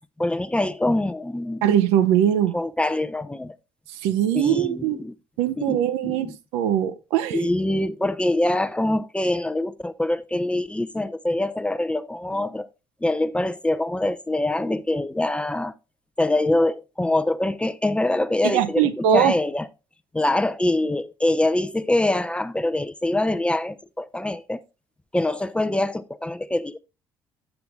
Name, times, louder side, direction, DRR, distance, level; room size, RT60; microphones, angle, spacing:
voice 1, 0.2-1.7 2.5-3.5 4.3-5.1 5.6-6.3 7.3-12.7 13.0-15.7 16.2-19.7 20.1-24.6 25.1-26.8, left 1 dB, 10° left, 0.5 m, -24 dB
voice 2, 1.6-2.5 4.0-5.0 5.4-6.3 6.5-7.5 18.4-19.3, right 10 dB, 60° right, 0.7 m, -21 dB
7.9 x 6.9 x 3.2 m
figure-of-eight pair, 50°, 12 cm